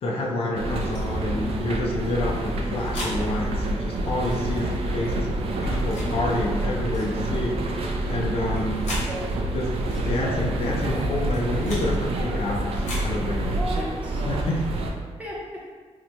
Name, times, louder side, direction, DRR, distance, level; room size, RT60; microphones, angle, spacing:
voice 1, 0.0-7.7 8.1-8.9 9.5-9.7 10.0-13.6 14.1-14.8, left 1 dB, 55° left, -2 dB, 0.5 m, -28 dB
sound 1, 0.5-14.9, right 1 dB, 55° right, 0.4 m, -27 dB
sound 2, 0.8-1.0 2.3-3.2 4.2-4.4 5.5-6.1 6.9-7.1 8.3-9.1 9.9-10.1 11.1-11.9 12.7-13.1, left 1 dB, 85° left, 1.1 m, -37 dB
voice 2, 8.7-9.3 13.4-14.3 15.2-15.7, equal, 10° right, -6 dB, 0.7 m, -35 dB
3.0 x 2.2 x 3.9 m, 1.4 s
wide cardioid pair, 155°, 12 cm